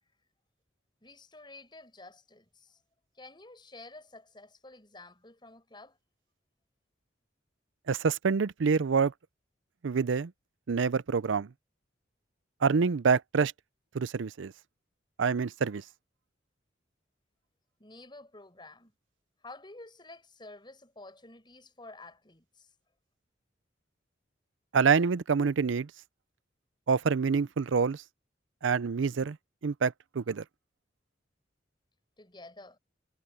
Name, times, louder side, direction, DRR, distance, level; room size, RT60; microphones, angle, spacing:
voice 1, 1.0-2.8 3.2-6.0 17.8-18.9 19.4-22.7 32.2-32.8, left 2 dB, 25° left, 7.0 m, -50 dB
voice 2, 7.9-9.1 9.8-10.3 10.7-11.5 12.6-13.5 13.9-14.5 15.2-15.8 24.7-25.9 26.9-28.0 28.6-29.4 29.6-30.4, right 5 dB, 90° right, 0.5 m, -26 dB
head